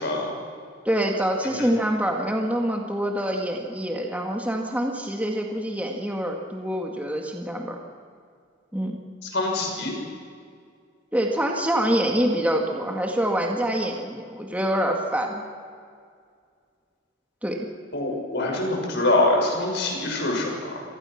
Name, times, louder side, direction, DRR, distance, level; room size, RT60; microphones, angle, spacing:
voice 1, 0.0-0.4 1.6-1.7 9.3-9.9 17.9-20.8, left 2 dB, 60° left, 1 dB, 6.1 m, -24 dB
voice 2, 0.9-7.8 8.7-9.0 11.1-15.4 17.4-17.7, right 1 dB, 5° right, 1 dB, 2.0 m, -25 dB
27.5 x 18.5 x 6.0 m, 2.1 s
head